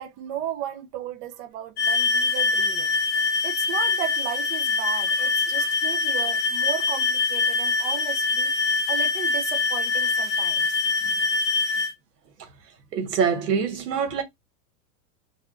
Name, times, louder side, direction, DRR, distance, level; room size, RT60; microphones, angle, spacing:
voice 1, 0.0-2.9 3.4-8.5 8.9-10.8, right 11 dB, 45° right, 0.7 m, -35 dB
sound 1, 1.8-11.9, left 4 dB, 20° left, 1.1 m, -24 dB
voice 2, 12.9-14.2, right 6 dB, 90° right, 1.4 m, -25 dB
3.4 x 2.4 x 2.5 m
supercardioid pair, 145°, 47 cm